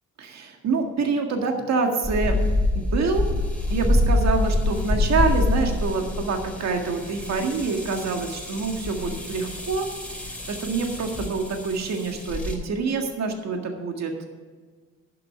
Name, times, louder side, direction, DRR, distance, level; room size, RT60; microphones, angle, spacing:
voice 1, 0.2-2.4 2.8-3.3 3.7-14.3, right 4 dB, 60° right, 3 dB, 1.8 m, -26 dB
sound 1, 2.0-12.6, left 2 dB, 5° left, 3.1 m, -26 dB
11.0 x 7.8 x 7.6 m, 1.5 s
cardioid pair, 90°, 30 cm